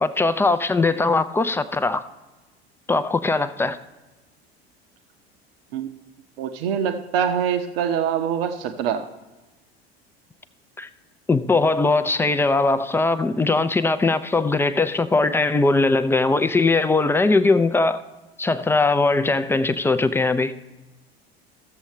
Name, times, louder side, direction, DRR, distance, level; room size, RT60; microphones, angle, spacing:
voice 1, 0.0-2.0 2.9-3.8 10.8-10.9 11.3-18.0 18.4-20.5, left 3 dB, 10° left, 0.3 m, -20 dB
voice 2, 6.4-9.1, right 8 dB, 65° right, 0.8 m, -24 dB
15.0 x 7.1 x 3.1 m
figure-of-eight pair, 70°, 32 cm